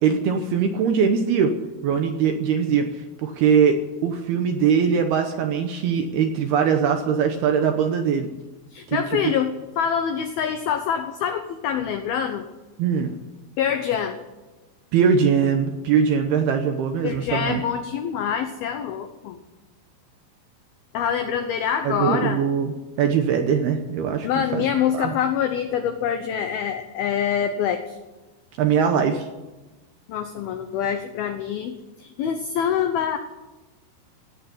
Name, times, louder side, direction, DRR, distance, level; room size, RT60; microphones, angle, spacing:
voice 1, 0.0-1.6 1.8-2.9 3.2-8.3 8.9-9.2 12.8-13.1 14.9-17.6 21.8-24.7 24.9-25.1 28.6-29.3, right 7 dB, 75° right, 6 dB, 2.4 m, -21 dB
voice 2, 8.7-12.4 13.6-14.2 17.0-19.4 20.9-22.4 24.2-28.0 30.1-33.2, left 8 dB, 90° left, 7 dB, 2.1 m, -25 dB
17.0 x 8.8 x 9.6 m, 1.2 s
omnidirectional pair, 5.6 m